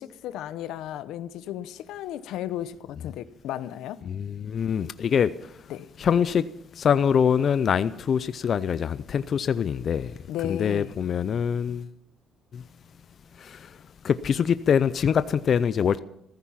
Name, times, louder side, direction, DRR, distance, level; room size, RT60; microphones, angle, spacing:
voice 1, 0.0-4.0 5.7-5.9 10.3-10.9, left 11 dB, 85° left, 0.8 m, -34 dB
voice 2, 4.0-5.6 6.0-6.5 6.7-10.1 10.4-11.9 12.5-12.6 13.3-13.8 14.0-16.0, left 7 dB, 50° left, 0.5 m, -24 dB
15.0 x 14.5 x 5.7 m
cardioid pair, 120°, 0 cm